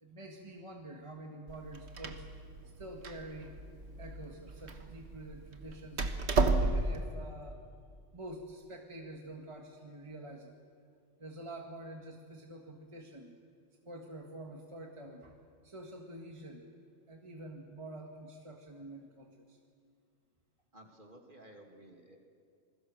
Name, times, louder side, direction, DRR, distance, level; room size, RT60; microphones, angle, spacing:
voice 1, 0.0-2.2 2.8-3.6 4.0-6.1 6.6-7.6 8.1-10.5 11.2-13.4 13.9-15.4 15.6-16.7 17.1-19.6, right 1 dB, 25° right, 1 dB, 1.8 m, -47 dB
Door, 1.5-7.1, right 3 dB, 65° right, 1.6 m, -33 dB
voice 2, 20.7-22.2, right 1 dB, 45° right, 2 dB, 2.8 m, -55 dB
27.5 x 21.0 x 6.5 m, 2.2 s
omnidirectional pair, 1.2 m